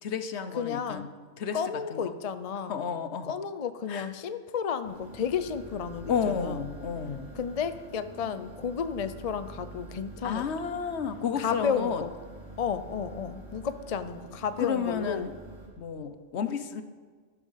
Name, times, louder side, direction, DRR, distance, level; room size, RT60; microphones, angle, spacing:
voice 1, 0.0-1.1 1.4-1.6 1.9-2.0 2.7-3.3 3.9-4.1 6.1-7.3 10.2-12.0 14.6-15.3 15.8-16.8, left 7 dB, 65° left, 10 dB, 1.1 m, -31 dB
voice 2, 0.6-1.1 1.5-2.8 3.2-6.6 7.3-10.4 11.4-12.1 12.6-15.3, left 7 dB, 45° left, 12 dB, 0.5 m, -32 dB
sound 1, 4.8-15.7, right 2 dB, 90° right, 3.7 m, -46 dB
12.5 x 12.5 x 5.6 m, 1.5 s
omnidirectional pair, 1.2 m